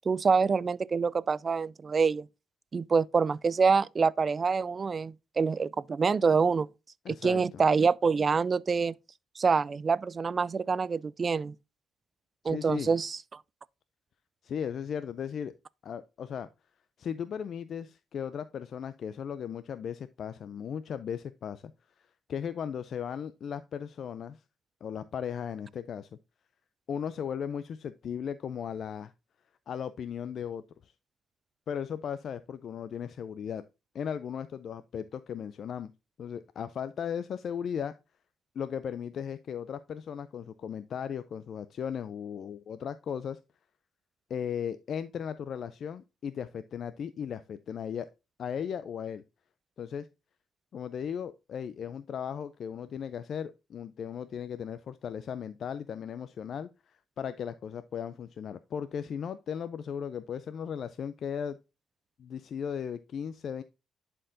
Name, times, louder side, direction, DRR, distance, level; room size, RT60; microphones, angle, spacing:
voice 1, 0.1-2.3 2.7-6.7 7.1-8.9 9.4-11.5 12.4-13.4, right 5 dB, 35° right, 0.3 m, -26 dB
voice 2, 7.0-7.4 12.4-12.9 14.4-15.5 15.8-16.5 17.0-21.6 22.3-24.4 24.8-26.1 26.9-29.1 29.7-30.9 31.7-33.6 33.9-35.9 36.2-37.9 38.6-43.4 44.3-48.1 48.4-49.2 49.8-50.1 50.7-61.6 62.2-63.6, left 8 dB, 60° left, 0.4 m, -36 dB
11.0 x 4.4 x 2.6 m
cardioid pair, 90°, 0 cm